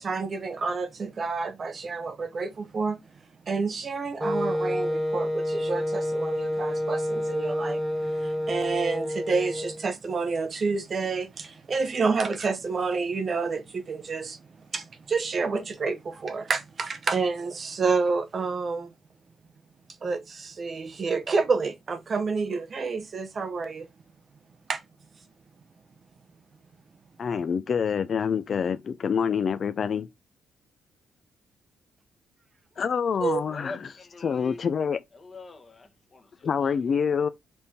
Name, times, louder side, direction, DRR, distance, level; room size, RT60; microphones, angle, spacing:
voice 1, 0.0-3.0 3.5-14.4 14.7-18.9 20.0-23.9 24.7-24.8 33.2-33.4, right 4 dB, 40° right, 0.6 m, -29 dB
Wind instrument woodwind instrument, 4.2-9.9, equal, 5° right, 0.7 m, -28 dB
voice 2, 27.2-30.1 32.8-33.9 34.2-35.0 36.4-37.3, left 6 dB, 50° left, 0.3 m, -26 dB
voice 3, 33.2-34.6 35.1-36.8, left 3 dB, 30° left, 1.0 m, -44 dB
4.2 x 3.5 x 2.7 m
cardioid pair, 90°, 0 cm